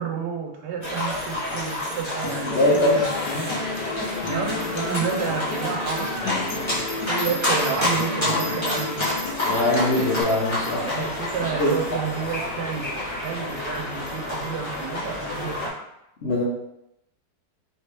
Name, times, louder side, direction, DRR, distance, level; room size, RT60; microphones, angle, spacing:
voice 1, 0.0-3.1 4.2-9.1 10.8-12.9 13.2-15.8, right 6 dB, 85° right, 2 dB, 1.2 m, -30 dB
sound 1, 0.8-15.7, left 1 dB, 20° left, 1.0 m, -29 dB
Acoustic guitar, 2.2-10.2, left 4 dB, 85° left, 1.2 m, -33 dB
voice 2, 2.5-3.0 3.3-3.5 9.5-11.0 11.4-11.7 16.2-16.4, left 1 dB, 60° left, -6 dB, 0.7 m, -22 dB
3.4 x 2.8 x 2.9 m, 0.82 s
omnidirectional pair, 1.8 m